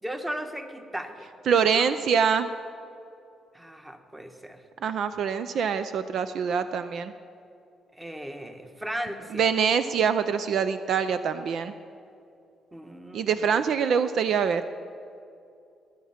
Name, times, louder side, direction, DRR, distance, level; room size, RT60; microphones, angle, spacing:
voice 1, 0.0-1.3 1.7-1.9 3.5-4.6 7.9-9.5 12.7-13.6, equal, 10° right, 6 dB, 1.3 m, -36 dB
voice 2, 1.5-2.5 4.8-7.1 9.3-11.7 13.1-14.6, right 7 dB, 65° right, 11 dB, 0.5 m, -24 dB
20.0 x 8.6 x 5.8 m, 2.5 s
cardioid pair, 90°, 0 cm